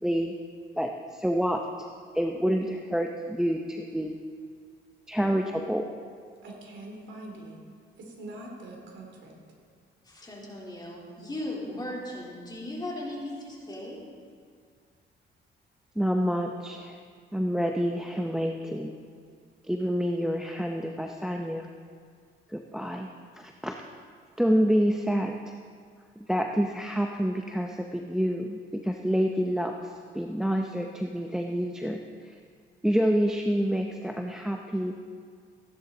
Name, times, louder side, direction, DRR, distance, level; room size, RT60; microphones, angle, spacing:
voice 1, 0.0-0.3 0.8-1.9 2.1-4.1 5.1-5.9 16.0-17.0 17.3-19.0 19.7-21.7 22.5-23.1 23.4-23.8 24.4-25.5 26.2-29.7 30.1-32.0 32.8-34.9, equal, 5° right, 3 dB, 0.7 m, -28 dB
voice 2, 6.4-7.6 8.0-9.3, right 1 dB, 70° right, 0 dB, 2.8 m, -43 dB
voice 3, 10.1-14.0, left 1 dB, 20° left, -4 dB, 3.3 m, -37 dB
15.5 x 10.5 x 3.9 m, 2.1 s
cardioid pair, 90°, 20 cm